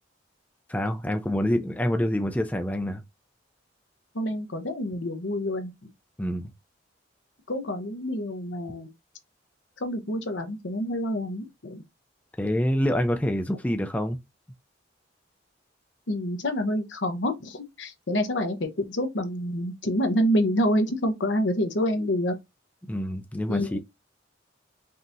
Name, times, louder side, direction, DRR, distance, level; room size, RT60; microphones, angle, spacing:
voice 1, 0.7-3.0 6.2-6.5 12.4-14.2 22.8-23.8, equal, 10° left, 0.5 m, -26 dB
voice 2, 4.1-5.7 7.5-8.9 9.8-11.8 16.1-22.3 23.5-23.8, equal, 75° left, 0.9 m, -27 dB
5.3 x 2.8 x 2.6 m
head